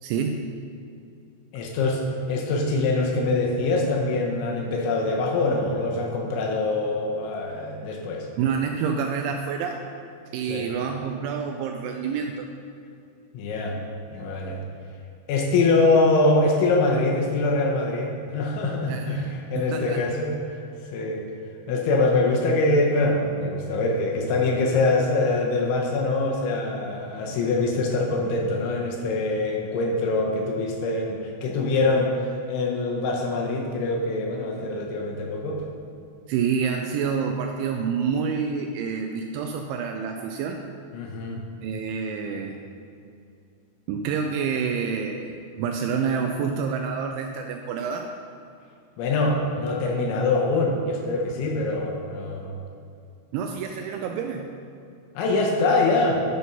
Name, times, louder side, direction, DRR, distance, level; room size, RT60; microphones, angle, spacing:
voice 1, 0.0-0.5 8.4-9.8 10.3-12.5 18.9-19.2 19.6-20.1 36.3-40.6 41.6-42.6 43.9-48.1 53.3-54.5, right 6 dB, 85° right, 3 dB, 2.7 m, -28 dB
voice 2, 1.5-2.0 2.3-8.3 10.5-10.7 13.3-13.8 14.1-14.6 15.3-20.6 20.9-21.3 21.7-32.1 32.5-35.6 40.9-41.4 49.0-52.6 55.2-56.2, left 2 dB, 80° left, 0 dB, 3.0 m, -24 dB
11.0 x 4.3 x 5.4 m, 2.5 s
omnidirectional pair, 5.7 m